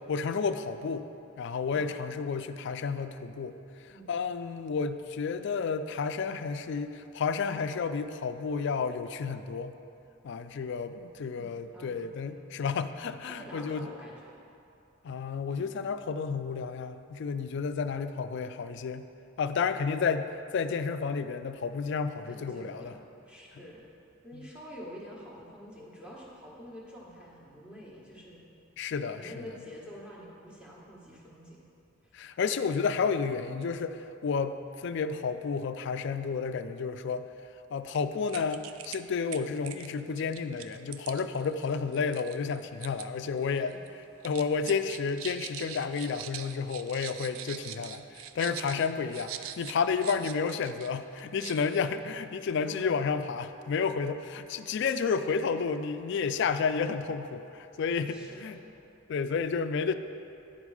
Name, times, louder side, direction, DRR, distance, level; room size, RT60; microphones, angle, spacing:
voice 1, 0.1-1.1 1.4-3.6 4.1-9.7 10.2-13.9 15.0-19.0 19.4-20.3 20.5-22.9 24.3-24.4 28.8-29.3 32.1-37.3 37.7-43.7 44.2-58.6 59.1-59.9, left 5 dB, 60° left, 10 dB, 0.3 m, -31 dB
voice 2, 11.4-12.4 13.3-14.3 22.2-23.9 24.2-28.4 29.1-31.6 32.0-32.1 43.5-43.8 48.4-48.7 50.0-50.2 51.5-51.6 52.6-53.1 54.9-55.2 58.0-58.6, equal, 5° right, -6 dB, 1.3 m, -48 dB
sound 1, 37.9-38.0 38.3-39.0 39.3-43.1 43.4-43.9 44.2-50.9 51.2-51.8, right 10 dB, 85° right, 0.4 m, -43 dB
9.9 x 5.3 x 4.8 m, 2.7 s
head